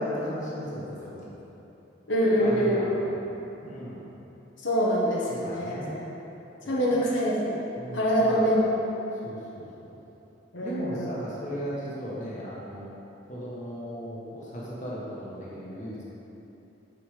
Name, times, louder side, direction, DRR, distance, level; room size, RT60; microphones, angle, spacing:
voice 1, 0.0-1.3 2.4-4.1 5.3-6.1 6.6-6.8 7.7-8.5 9.2-10.0 10.6-12.9 13.3-16.0, equal, 40° left, -6 dB, 1.4 m, -36 dB
voice 2, 2.1-2.9 4.6-5.7 6.7-7.6 7.9-8.6 10.5-11.1, equal, 80° left, -6 dB, 1.4 m, -24 dB
8.5 x 4.9 x 5.0 m, 3.0 s
head